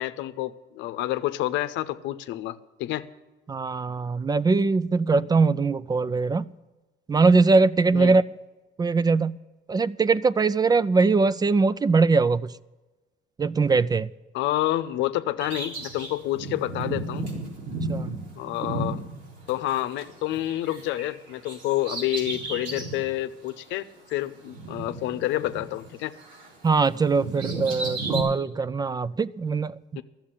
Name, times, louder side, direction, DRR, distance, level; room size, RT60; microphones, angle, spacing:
voice 1, 0.0-3.1 7.9-8.2 14.3-17.3 18.4-19.0 19.5-26.1 30.0-30.1, left 14 dB, 85° left, 0.7 m, -29 dB
voice 2, 3.5-6.5 7.1-8.2 8.8-9.4 9.7-12.5 13.4-14.1 17.9-18.2 26.6-29.8, right 4 dB, 20° right, 0.3 m, -21 dB
Bird vocalization bird call bird song, 15.4-20.0 20.3-23.0 23.5-23.6 24.5-25.9 26.2-28.2, right 2 dB, 90° right, 4.3 m, -33 dB
12.5 x 7.3 x 8.9 m
cardioid pair, 105°, 19 cm